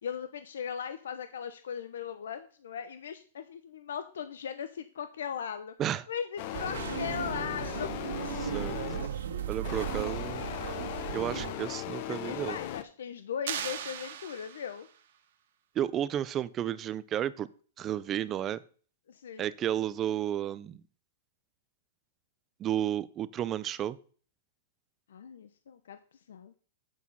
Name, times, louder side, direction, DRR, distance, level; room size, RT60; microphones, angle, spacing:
voice 1, 0.0-5.7 6.1-8.0 12.1-14.9 19.1-19.4 25.1-26.0 26.3-26.6, left 8 dB, 90° left, 11 dB, 0.8 m, -38 dB
sound 1, 6.4-9.2 9.6-12.8, left 12 dB, 35° left, 0.6 m, -38 dB
sound 2, 6.5-11.5, right 9 dB, 80° right, 1.9 m, -36 dB
voice 2, 8.4-8.8 9.5-10.4 11.1-12.6 15.8-17.5 17.8-18.6 19.4-20.8 22.6-24.0, right 11 dB, 15° right, 16 dB, 0.3 m, -32 dB
sound 3, 13.5-15.0, right 9 dB, 50° right, 1.5 m, -38 dB
8.4 x 6.2 x 5.4 m, 0.42 s
supercardioid pair, 180°, 0 cm